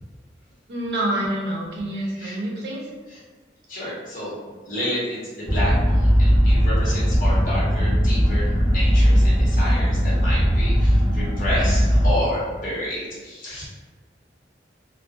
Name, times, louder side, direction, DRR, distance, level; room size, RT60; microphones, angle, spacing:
voice 1, 0.7-2.9, right 1 dB, 65° right, -3 dB, 0.6 m, -27 dB
voice 2, 3.7-4.3 4.7-13.7, left 1 dB, 50° left, -8 dB, 1.0 m, -30 dB
sound 1, 5.5-12.1, equal, 10° left, 0.8 m, -18 dB
2.3 x 2.2 x 2.5 m, 1.4 s
head